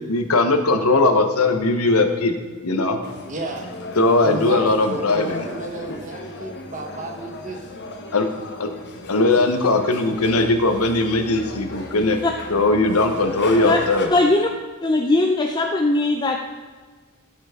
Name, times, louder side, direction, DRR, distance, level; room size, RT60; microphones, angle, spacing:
voice 1, 0.1-2.3 2.6-3.0 4.0-5.5 8.1-8.3 8.6-8.7 9.1-12.2 12.5-14.1, left 2 dB, 80° left, 6 dB, 1.1 m, -19 dB
sound 1, 3.0-14.1, left 2 dB, 55° left, 1.2 m, -36 dB
voice 2, 3.3-3.7 4.2-7.6, right 2 dB, 35° right, 2 dB, 1.3 m, -32 dB
voice 3, 14.1-14.5 14.8-16.4, left 2 dB, 20° left, 2 dB, 0.5 m, -19 dB
16.5 x 6.0 x 3.7 m, 1.5 s
head